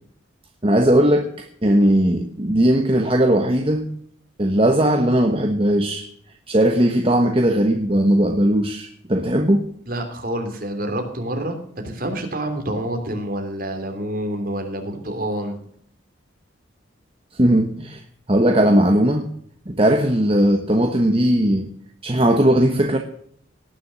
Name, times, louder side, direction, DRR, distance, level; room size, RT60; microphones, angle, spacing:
voice 1, 0.6-1.3 1.6-3.9 4.4-6.0 6.5-9.7 17.4-18.0 18.3-19.3 19.7-21.7 22.0-23.0, right 1 dB, 30° right, 4 dB, 1.1 m, -18 dB
voice 2, 9.9-15.6, right 1 dB, 45° right, 4 dB, 3.1 m, -27 dB
18.5 x 7.0 x 6.2 m, 0.63 s
head